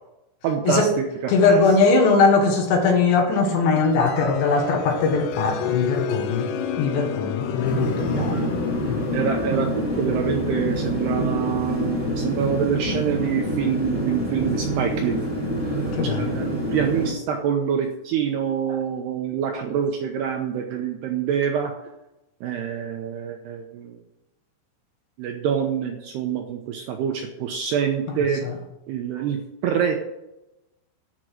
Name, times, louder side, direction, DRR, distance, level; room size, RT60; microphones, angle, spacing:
voice 1, 0.4-1.6 8.1-8.5 9.1-15.2 15.7-21.7 22.4-24.0 25.2-28.4 28.9-30.0, right 8 dB, 80° right, 3 dB, 2.5 m, -26 dB
voice 2, 1.3-6.5 6.8-8.4 8.9-9.1 16.0-16.3 28.4-28.5, left 4 dB, 65° left, 3 dB, 3.7 m, -20 dB
sound 1, 3.8-16.3, left 8 dB, 85° left, 3.3 m, -32 dB
sound 2, 7.6-17.1, equal, 5° right, 2.0 m, -27 dB
12.0 x 6.2 x 7.9 m, 0.94 s
omnidirectional pair, 5.8 m